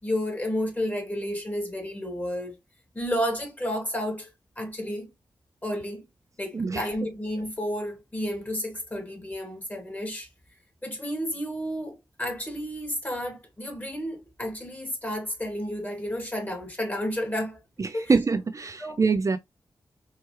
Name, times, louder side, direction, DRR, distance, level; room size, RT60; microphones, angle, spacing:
voice 1, 0.0-2.5 2.9-4.3 4.6-5.1 5.6-6.0 6.4-10.3 10.8-17.6 17.9-18.1 18.8-19.0, equal, 20° left, 2.8 m, -31 dB
voice 2, 17.8-19.4, right 4 dB, 45° right, 0.6 m, -24 dB
4.6 x 3.0 x 3.1 m
cardioid pair, 45°, 8 cm